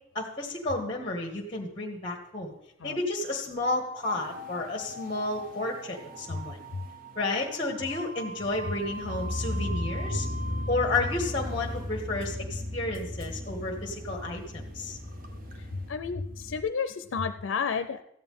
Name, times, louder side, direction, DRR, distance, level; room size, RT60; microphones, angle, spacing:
voice 1, 0.1-2.5 2.8-6.6 7.2-10.3 10.7-15.0, left 2 dB, 30° left, 1 dB, 1.1 m, -31 dB
sound 1, 4.0-15.9, right 1 dB, 45° right, 1.0 m, -44 dB
sound 2, 8.4-16.6, left 1 dB, 75° right, 3.5 m, -36 dB
voice 2, 15.6-18.0, left 5 dB, 90° left, 10 dB, 0.5 m, -31 dB
14.0 x 9.1 x 3.6 m, 0.80 s
head